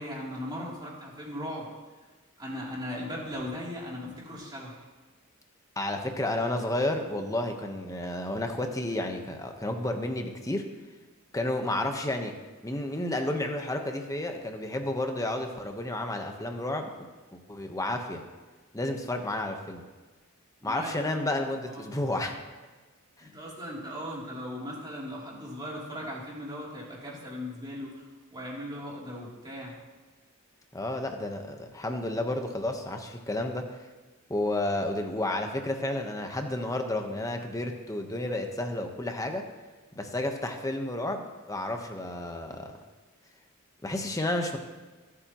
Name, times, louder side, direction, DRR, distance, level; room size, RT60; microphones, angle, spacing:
voice 1, 0.0-1.7 2.4-4.8 20.6-21.4 21.7-21.9 23.2-28.0 28.3-29.7, equal, 20° right, -5 dB, 3.2 m, -38 dB
voice 2, 5.8-10.6 11.3-12.3 12.6-16.9 17.3-18.2 18.7-19.8 20.6-22.3 30.7-33.6 34.3-39.4 39.9-42.7 43.8-44.6, left 1 dB, 15° left, 4 dB, 1.2 m, -31 dB
23.0 x 8.6 x 3.1 m, 1.3 s
head